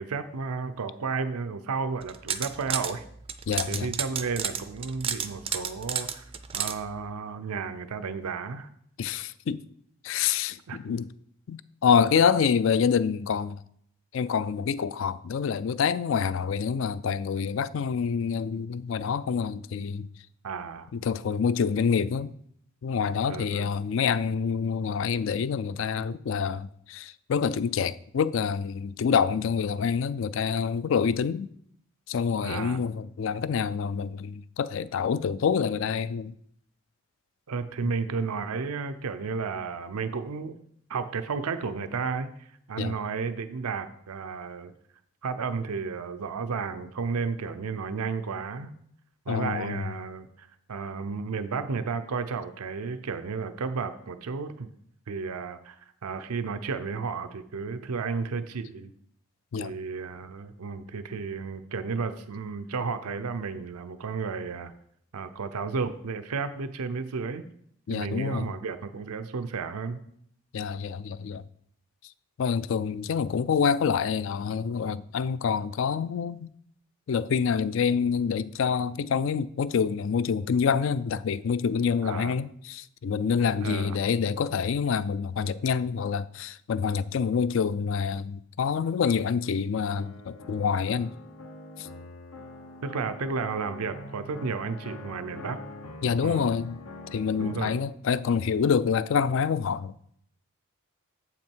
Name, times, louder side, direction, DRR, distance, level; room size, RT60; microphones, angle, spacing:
voice 1, 0.0-3.0 3.7-6.2 6.5-8.7 10.7-10.9 20.4-20.9 23.3-23.7 32.4-32.8 37.5-40.6 40.9-44.7 45.2-48.7 49.3-54.7 55.1-58.9 59.6-64.7 65.1-67.4 67.9-70.0 82.0-82.4 83.6-84.0 92.8-95.6 96.2-96.5 97.4-97.7, right 5 dB, 90° right, 0.5 m, -33 dB
sound 1, 2.0-2.9 3.3-6.7, right 8 dB, 25° right, 0.4 m, -31 dB
voice 2, 3.5-3.9 9.0-9.6 10.0-11.1 11.5-13.6 14.1-20.1 21.0-22.3 22.8-31.5 32.1-36.3 37.8-37.9 42.8-42.9 49.3-49.8 59.5-59.7 67.9-68.5 70.5-71.4 72.4-76.5 77.1-91.1 96.0-96.8 97.1-99.9, left 6 dB, 60° left, 0.3 m, -27 dB
sound 2, 89.9-97.8, left 2 dB, 85° left, 1.1 m, -44 dB
7.7 x 5.9 x 4.5 m
head